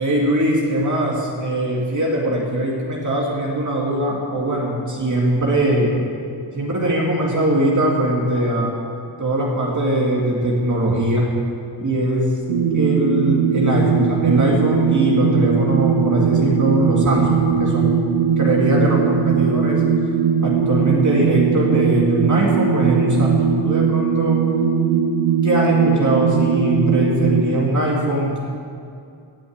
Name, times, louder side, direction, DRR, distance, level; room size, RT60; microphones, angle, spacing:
voice 1, 0.0-6.0 6.5-8.7 9.2-11.3 11.8-12.3 12.7-17.9 18.4-19.8 20.4-24.4 25.4-28.4, right 1 dB, 40° right, -3 dB, 2.5 m, -21 dB
sound 1, 12.5-27.4, right 6 dB, 85° right, 1.2 m, -19 dB
15.5 x 7.1 x 9.6 m, 2.5 s
wide cardioid pair, 105°, 47 cm